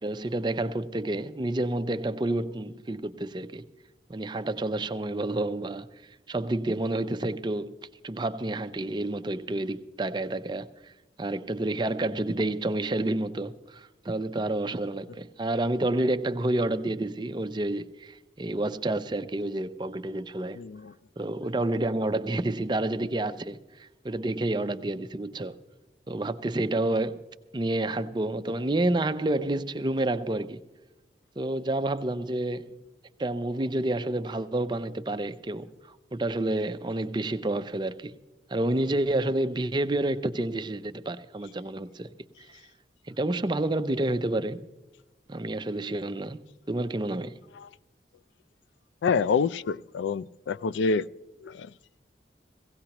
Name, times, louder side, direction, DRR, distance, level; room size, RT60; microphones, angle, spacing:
voice 1, 0.0-3.6 4.1-5.9 6.3-7.8 8.0-10.9 11.2-20.6 21.2-25.6 26.1-27.2 27.5-30.6 31.4-32.7 33.2-38.1 38.5-42.1 42.4-42.6 43.1-44.6 45.3-46.4 46.7-47.4, right 2 dB, 25° right, 0.5 m, -29 dB
voice 2, 20.6-20.9 47.6-47.7 49.0-51.1 51.4-51.7, left 5 dB, 85° left, 0.3 m, -27 dB
17.5 x 16.5 x 2.9 m
head